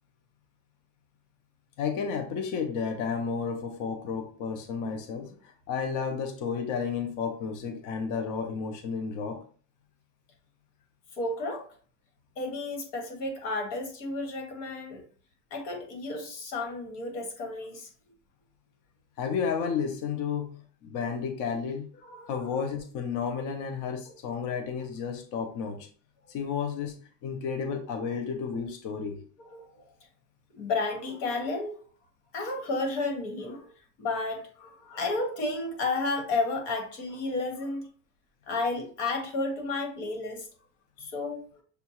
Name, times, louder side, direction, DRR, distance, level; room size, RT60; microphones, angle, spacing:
voice 1, 1.8-9.4 19.2-21.9 22.3-25.9 26.3-29.2, left 6 dB, 40° left, 0.6 m, -32 dB
voice 2, 11.1-11.7 12.4-15.0 15.5-17.9 22.0-22.5 29.4-29.8 30.5-31.8 32.3-33.7 34.0-37.9 38.5-40.5 41.0-41.6, left 3 dB, 85° left, 1.9 m, -32 dB
6.6 x 2.3 x 2.9 m
cardioid pair, 145°, 46 cm